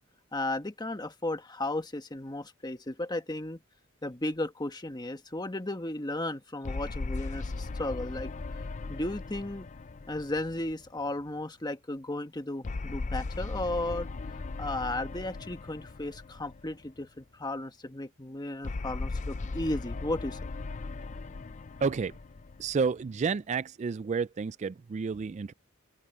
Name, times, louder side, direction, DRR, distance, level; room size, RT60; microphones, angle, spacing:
voice 1, 0.3-3.6 4.0-8.6 8.9-9.7 10.1-14.1 14.6-20.4, left 1 dB, 20° left, 1.4 m, -35 dB
sound 1, 6.6-11.2 12.6-17.0 18.6-23.2, left 3 dB, 35° left, 0.5 m, -38 dB
voice 2, 21.8-22.2 22.6-25.5, right 5 dB, 35° right, 0.3 m, -30 dB
open air
head